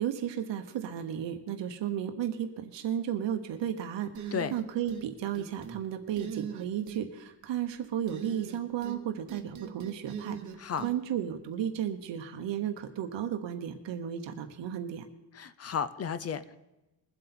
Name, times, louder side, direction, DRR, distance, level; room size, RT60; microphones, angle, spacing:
voice 1, 0.0-10.4 10.8-15.0, right 10 dB, 80° right, 7 dB, 1.0 m, -34 dB
sound 1, 4.1-5.0 5.3-5.8 6.2-7.0 8.1-9.0 9.3-10.9, right 8 dB, 40° right, 1.1 m, -40 dB
voice 2, 15.4-16.6, left 7 dB, 35° left, 15 dB, 0.5 m, -33 dB
21.5 x 7.9 x 4.3 m, 1.0 s
wide cardioid pair, 155°, 43 cm